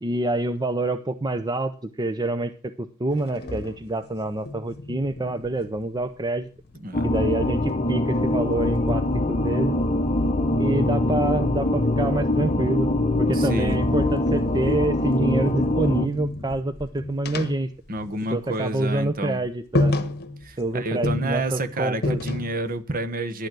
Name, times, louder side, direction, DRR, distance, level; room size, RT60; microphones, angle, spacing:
voice 1, 0.0-2.5 2.8-6.5 7.0-9.8 10.6-12.9 13.2-17.7 18.3-19.9 20.6-22.2, right 2 dB, 20° right, 0.6 m, -26 dB
sound 1, 3.1-6.2 6.6-9.5 10.8-12.8 13.3-18.6 18.8-19.0 19.4-19.5 19.7-20.6 21.0-22.7, left 2 dB, 45° left, 1.3 m, -32 dB
sound 2, 6.9-16.1, left 1 dB, 30° left, 1.0 m, -23 dB
voice 2, 13.3-13.8 17.9-19.4 20.4-23.5, right 1 dB, 40° right, 1.2 m, -29 dB
11.5 x 9.3 x 6.1 m
head